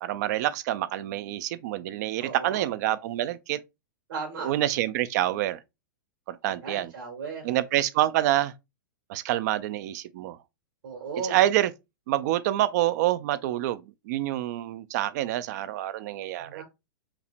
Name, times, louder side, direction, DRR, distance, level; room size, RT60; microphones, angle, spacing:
voice 1, 0.0-3.6 4.4-5.6 6.3-6.9 7.4-8.5 9.1-10.4 11.2-11.7 12.1-16.6, right 14 dB, 55° right, 0.4 m, -27 dB
voice 2, 2.2-2.6 4.1-4.6 6.6-7.4 10.8-11.4 16.5-16.6, right 4 dB, 75° right, 1.7 m, -35 dB
5.8 x 2.1 x 2.5 m
hypercardioid pair, 125°, 11 cm